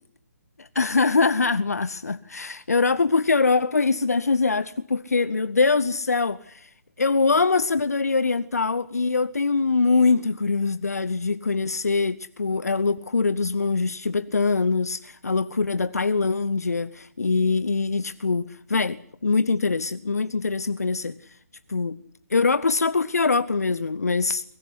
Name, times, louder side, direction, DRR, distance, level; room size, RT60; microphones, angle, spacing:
voice 1, 0.6-6.7 7.0-21.2 21.7-22.0 22.3-24.4, left 4 dB, 65° left, 0.9 m, -23 dB
23.5 x 15.5 x 9.7 m
figure-of-eight pair, 140°, 9 cm